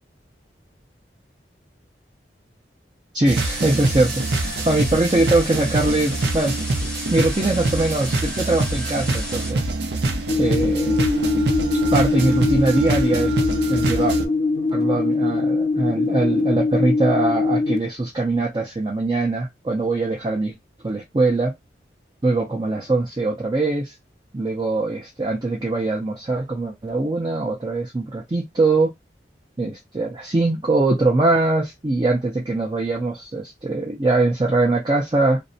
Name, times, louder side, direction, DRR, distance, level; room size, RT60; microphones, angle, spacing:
voice 1, 3.1-6.6 7.1-9.7 10.4-11.0 11.9-13.4 13.7-14.2 14.7-20.5 20.8-21.5 22.2-23.9 24.3-28.9 29.6-35.4, right 2 dB, 25° right, 0.5 m, -22 dB
sound 1, 3.3-9.5, left 1 dB, 5° left, 0.7 m, -34 dB
sound 2, 3.3-14.3, right 2 dB, 70° right, 0.6 m, -25 dB
sound 3, 10.3-17.8, left 3 dB, 65° left, 0.5 m, -22 dB
2.6 x 2.1 x 2.6 m
head